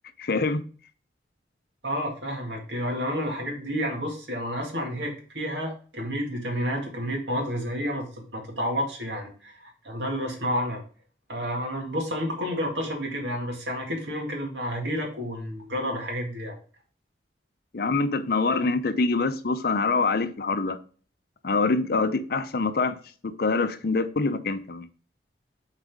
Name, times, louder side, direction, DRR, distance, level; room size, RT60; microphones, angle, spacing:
voice 1, 0.2-0.6 17.7-20.8 21.4-22.9 23.2-24.9, left 3 dB, 60° left, 0.6 m, -25 dB
voice 2, 1.8-10.8 11.3-16.6, equal, 85° right, 2.0 m, -30 dB
7.4 x 4.1 x 3.5 m
head